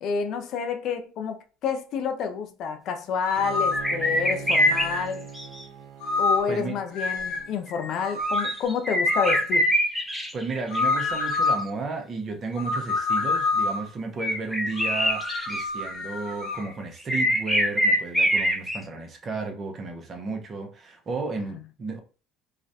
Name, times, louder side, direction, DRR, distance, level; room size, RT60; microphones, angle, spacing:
voice 1, 0.0-5.3 6.2-9.7, left 6 dB, 60° left, 0.5 m, -29 dB
sound 1, 3.3-3.9 4.6-5.1 6.0-6.6 6.9-7.5 8.0-8.6 9.1-9.5 10.7-11.7 12.6-13.9 14.8-16.6, left 3 dB, 75° left, 0.9 m, -27 dB
Bowed string instrument, 3.3-8.4, right 6 dB, 75° right, 0.4 m, -42 dB
sound 2, 3.7-4.9 5.3-5.6 7.7-10.4 10.7-11.4 14.2-15.6 15.9-16.7 17.1-18.8, equal, ahead, 0.5 m, -24 dB
voice 2, 10.3-22.0, right 4 dB, 40° right, 0.7 m, -33 dB
2.4 x 2.1 x 2.6 m
supercardioid pair, 90°, 0 cm